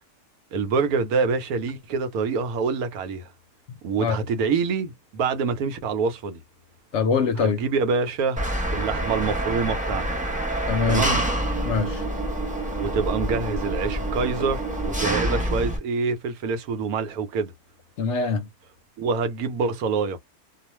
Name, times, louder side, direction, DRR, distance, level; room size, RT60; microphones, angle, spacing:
voice 1, 0.5-3.3 3.8-6.4 7.4-8.5 8.7-10.1 10.9-11.2 12.8-17.5 19.0-20.2, right 5 dB, 85° right, 1.2 m, -26 dB
voice 2, 6.9-7.6 10.7-11.1 11.6-12.0 18.0-18.5, left 5 dB, 65° left, 0.7 m, -23 dB
Engine, 8.4-15.8, right 1 dB, 10° right, 0.6 m, -27 dB
2.4 x 2.4 x 3.0 m
omnidirectional pair, 1.5 m